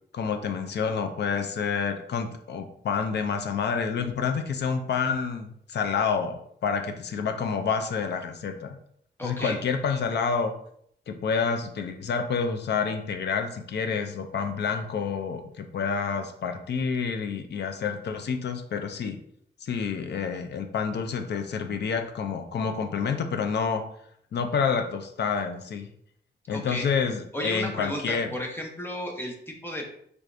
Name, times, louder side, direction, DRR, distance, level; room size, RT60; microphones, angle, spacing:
voice 1, 0.1-8.8 9.2-10.5 11.1-19.2 19.6-23.8 24.3-25.9 26.5-28.3, left 6 dB, 70° left, 6 dB, 0.5 m, -28 dB
voice 2, 9.2-9.6 26.5-26.9 27.3-29.9, left 1 dB, 10° left, 1 dB, 0.7 m, -33 dB
4.8 x 3.4 x 2.5 m, 0.68 s
wide cardioid pair, 170°, 18 cm